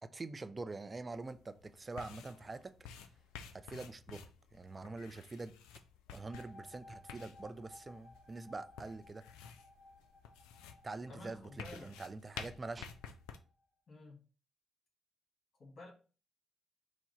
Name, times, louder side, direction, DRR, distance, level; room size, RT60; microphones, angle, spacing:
voice 1, 0.0-3.1 3.5-5.6 6.1-9.2 10.8-12.9, right 3 dB, 35° right, 0.4 m, -45 dB
sound 1, 1.1-13.4, left 7 dB, 90° left, 0.3 m, -52 dB
sound 2, 6.1-13.5, left 2 dB, 40° left, 1.8 m, -59 dB
voice 2, 11.1-11.9 13.9-14.2 15.6-15.9, left 2 dB, 55° left, 1.6 m, -51 dB
4.5 x 2.1 x 3.9 m
supercardioid pair, 50°, 0 cm